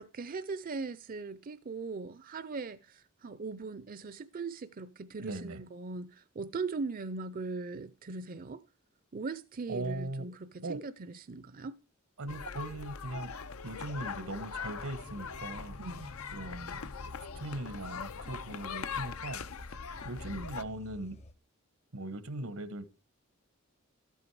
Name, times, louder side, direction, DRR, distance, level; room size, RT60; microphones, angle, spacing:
voice 1, 0.0-8.6 9.1-11.7 15.8-16.1, right 4 dB, 40° right, 0.5 m, -40 dB
voice 2, 5.2-5.6 9.7-10.3 10.6-10.8 12.2-13.3 13.6-15.8 16.3-16.8 17.3-19.4 20.0-21.2 21.9-22.8, right 2 dB, 80° right, 1.2 m, -39 dB
sound 1, 12.3-20.6, left 6 dB, 85° left, 0.8 m, -41 dB
sound 2, 15.0-21.3, left 1 dB, 30° left, 0.7 m, -51 dB
13.0 x 8.6 x 4.7 m
head